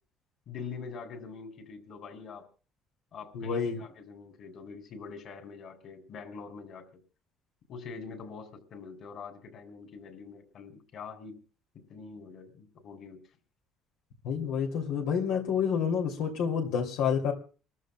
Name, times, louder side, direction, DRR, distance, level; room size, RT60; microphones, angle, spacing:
voice 1, 0.5-2.5 3.1-6.9 7.7-11.4 11.9-13.4, left 5 dB, 55° left, 6 dB, 3.3 m, -44 dB
voice 2, 3.3-3.8 14.2-17.3, left 7 dB, 90° left, 1 dB, 2.7 m, -29 dB
29.0 x 14.0 x 2.3 m, 0.38 s
cardioid pair, 115°, 0 cm